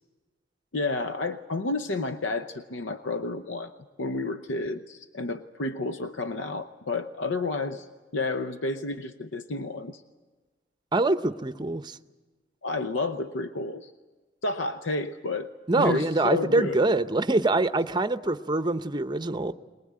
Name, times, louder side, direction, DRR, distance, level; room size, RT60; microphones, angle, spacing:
voice 1, 0.7-3.7 4.0-7.9 8.1-10.0 12.6-13.9 14.4-15.5 15.8-16.8, left 3 dB, 80° left, 9 dB, 0.8 m, -30 dB
voice 2, 10.9-12.0 15.7-19.5, right 2 dB, 25° right, 11 dB, 0.7 m, -24 dB
22.5 x 21.0 x 8.7 m, 1.3 s
head